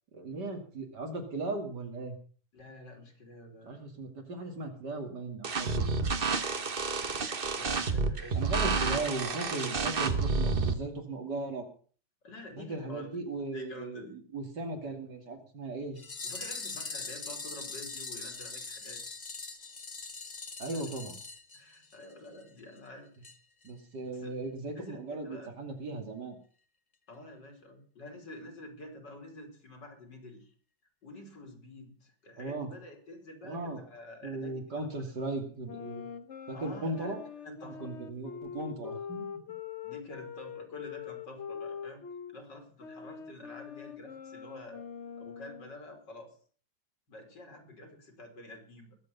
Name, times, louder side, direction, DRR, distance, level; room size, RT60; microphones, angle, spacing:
voice 1, 0.1-2.2 3.6-5.9 8.3-11.6 12.6-16.0 20.6-21.2 23.6-26.4 32.4-32.7 33.4-33.8 34.2-36.0 36.5-37.2 37.6-39.3, right 2 dB, 65° right, 3 dB, 3.1 m, -37 dB
voice 2, 2.5-3.7 7.2-8.7 12.2-13.2 13.5-14.2 16.2-19.0 20.7-20.8 21.5-23.1 24.1-24.3 24.8-25.5 27.1-30.5 31.0-34.9 36.5-37.1 37.4-37.9 39.8-42.0 42.3-44.9 45.2-46.3 47.1-49.0, left 1 dB, 70° left, 3 dB, 3.9 m, -48 dB
sound 1, 5.4-10.7, right 4 dB, 35° right, 1.1 m, -30 dB
sound 2, 16.0-22.1 22.4-22.5 22.8-22.9 23.2-23.4 23.6-23.7, left 3 dB, 25° left, 1.2 m, -41 dB
sound 3, 35.7-42.4 42.8-45.8, left 7 dB, 45° left, 1.1 m, -43 dB
21.0 x 8.1 x 5.4 m, 0.43 s
omnidirectional pair, 2.0 m